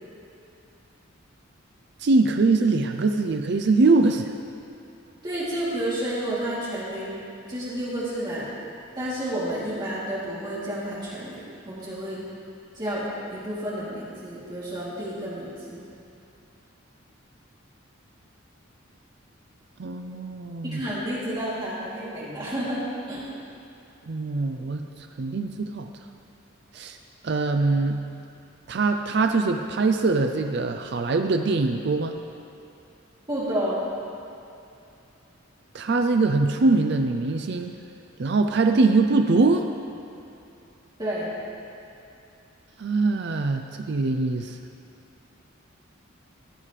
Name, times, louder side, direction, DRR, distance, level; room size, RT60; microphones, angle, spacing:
voice 1, 2.0-4.3 19.8-20.8 24.1-24.8 25.2-25.9 26.7-27.0 27.2-28.0 28.7-32.1 35.7-37.7 38.2-39.6 42.8-44.6, right 3 dB, 55° right, 5 dB, 0.4 m, -22 dB
voice 2, 5.2-7.2 7.5-8.5 9.0-12.2 12.7-13.0 13.3-15.8 20.6-23.3 33.3-33.8 41.0-41.3, right 1 dB, 20° right, -10 dB, 2.9 m, -30 dB
15.5 x 9.1 x 3.3 m, 2.7 s
head